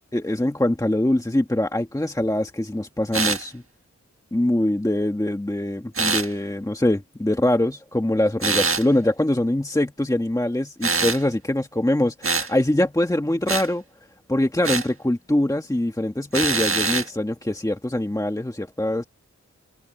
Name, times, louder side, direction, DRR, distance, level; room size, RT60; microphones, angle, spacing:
voice 1, 0.1-3.6 4.3-13.8 14.3-19.0, left 1 dB, 10° left, 1.6 m, -23 dB
sound 1, 3.1-3.4 5.9-6.3 8.4-8.9 10.8-11.2 12.2-12.5 13.5-13.7 14.6-14.9 16.3-17.1, right 4 dB, 50° right, 1.6 m, -23 dB
wide cardioid pair, 85°, 29 cm